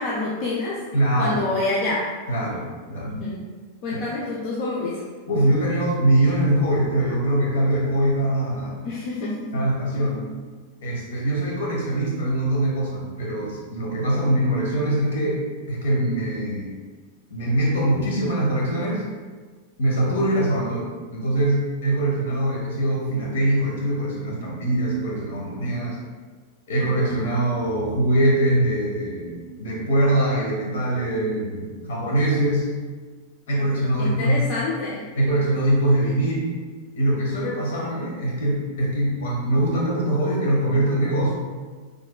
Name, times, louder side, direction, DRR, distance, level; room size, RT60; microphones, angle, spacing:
voice 1, 0.0-0.8 1.2-2.1 3.1-3.4 3.8-5.0 8.8-9.6 34.0-35.0, left 2 dB, 40° left, -4 dB, 0.5 m, -27 dB
voice 2, 0.9-1.4 2.3-3.2 5.3-8.9 9.5-10.3 10.8-15.4 15.7-16.7 17.3-19.0 19.8-26.0 26.7-32.7 33.5-34.4 35.1-36.6 36.9-41.3, right 1 dB, 60° left, -3 dB, 1.0 m, -23 dB
4.3 x 3.2 x 2.2 m, 1.5 s
figure-of-eight pair, 90°, 0 cm